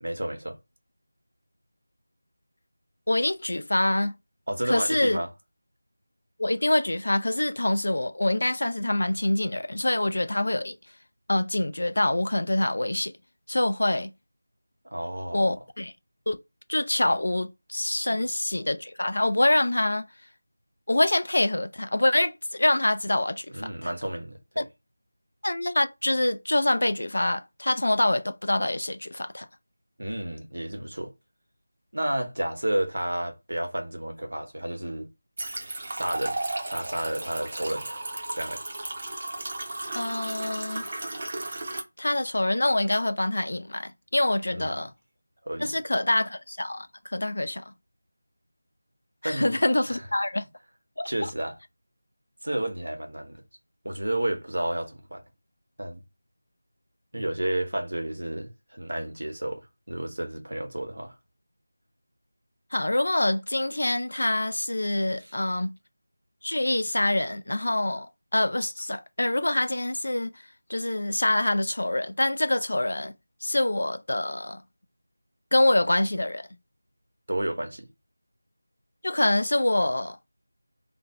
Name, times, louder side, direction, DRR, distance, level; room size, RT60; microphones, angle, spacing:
voice 1, 0.0-0.6 4.5-5.3 14.8-15.6 18.1-18.2 23.5-24.7 30.0-31.1 31.9-35.1 35.9-36.4 36.7-37.9 38.3-38.6 44.5-44.8 45.4-45.7 49.2-49.6 49.9-50.1 51.1-51.6 52.4-53.4 53.8-55.2 55.8-56.0 57.1-61.1 65.2-65.3 77.3-77.9, right 1 dB, 85° right, 0.8 m, -31 dB
voice 2, 3.1-4.1 4.6-5.2 6.4-10.8 11.3-13.1 13.5-14.1 15.3-15.9 16.3-16.4 16.7-20.1 20.9-23.9 24.6-24.7 25.4-29.5 39.9-40.9 42.0-44.9 45.6-47.7 49.2-50.5 51.0-51.3 62.7-65.7 66.4-68.1 68.3-70.4 70.7-73.1 73.4-74.6 75.5-76.5 79.0-80.2, left 1 dB, 70° left, 0.4 m, -25 dB
sound 1, 35.4-41.8, right 2 dB, 35° right, 0.5 m, -34 dB
2.5 x 2.0 x 3.0 m
figure-of-eight pair, 175°, 0 cm